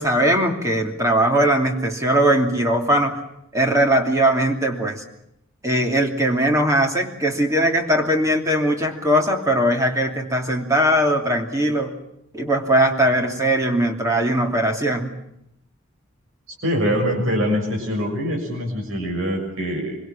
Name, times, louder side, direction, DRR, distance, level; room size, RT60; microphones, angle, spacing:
voice 1, 0.0-3.2 3.5-5.0 5.6-11.9 12.3-15.1, right 1 dB, 15° right, 2 dB, 2.8 m, -20 dB
voice 2, 16.6-20.0, equal, 75° right, 1 dB, 6.8 m, -23 dB
25.5 x 24.0 x 7.4 m, 0.77 s
head